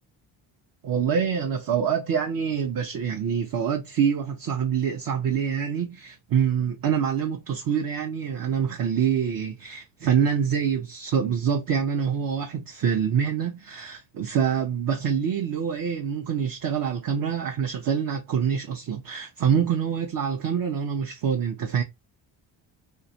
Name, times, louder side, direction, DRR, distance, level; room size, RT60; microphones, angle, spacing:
voice 1, 0.8-21.8, right 7 dB, 45° right, 0.6 m, -26 dB
2.3 x 2.1 x 2.6 m
supercardioid pair, 60°, 48 cm